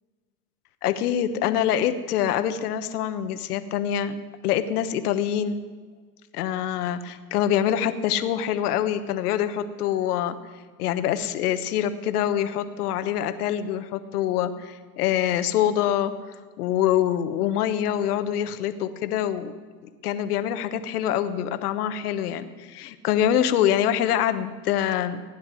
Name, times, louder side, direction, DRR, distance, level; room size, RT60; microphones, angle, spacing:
voice 1, 0.8-4.2 4.4-5.6 6.3-10.4 10.8-16.1 16.6-19.5 20.0-25.2, left 10 dB, 70° left, 10 dB, 1.2 m, -25 dB
16.5 x 10.5 x 6.2 m, 1.5 s
hypercardioid pair, 115°, 47 cm